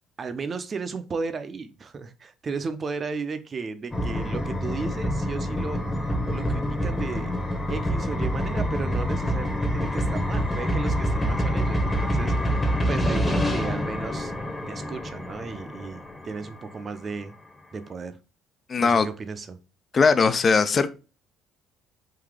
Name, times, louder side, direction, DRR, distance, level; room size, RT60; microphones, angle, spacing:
voice 1, 0.2-5.9 6.3-7.3 7.7-12.6 12.9-14.3 14.7-17.3 17.7-18.2 18.8-19.6, right 4 dB, 35° right, 10 dB, 0.6 m, -34 dB
sound 1, 3.9-16.7, equal, 10° left, 0.9 m, -26 dB
voice 2, 18.7-19.1 19.9-20.9, left 5 dB, 35° left, 12 dB, 0.5 m, -19 dB
3.9 x 2.7 x 4.8 m, 0.31 s
cardioid pair, 110°, 0 cm